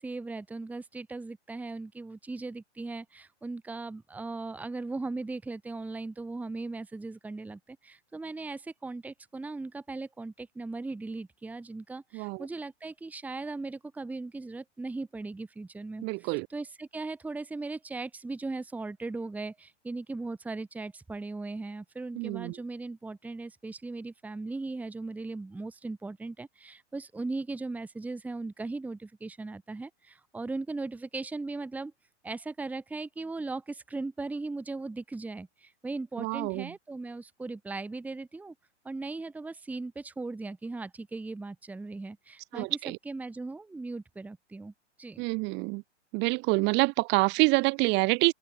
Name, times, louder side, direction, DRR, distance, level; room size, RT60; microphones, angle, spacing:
voice 1, 0.0-31.9 32.2-38.5 38.8-44.7 45.0-45.2, right 3 dB, 5° right, 1.3 m, -38 dB
voice 2, 12.1-12.5 16.0-16.5 22.1-22.6 36.2-36.7 42.5-43.0 45.2-45.8 46.1-48.3, right 27 dB, 30° right, 1.3 m, -27 dB
hypercardioid pair, 130°, 36 cm